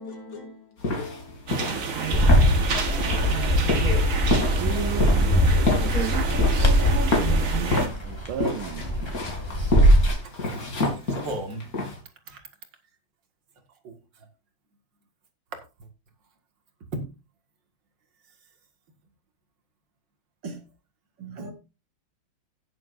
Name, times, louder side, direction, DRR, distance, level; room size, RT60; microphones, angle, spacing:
voice 1, 0.0-3.1, left 4 dB, 80° left, 3.6 m, -44 dB
sound 1, 0.8-12.0, left 2 dB, 45° left, 3.4 m, -29 dB
sound 2, 1.5-7.9, right 5 dB, 45° right, 1.7 m, -29 dB
Bird, 2.1-10.1, equal, 15° left, 1.9 m, -21 dB
voice 2, 4.3-6.8 8.1-8.9, right 10 dB, 90° right, 1.6 m, -35 dB
voice 3, 10.2-10.7 11.2-11.6 12.3-12.4 13.8-13.9 16.9-17.0 20.4-20.6 21.2-21.5, right 2 dB, 60° right, 2.5 m, -35 dB
17.5 x 7.7 x 2.6 m
omnidirectional pair, 2.2 m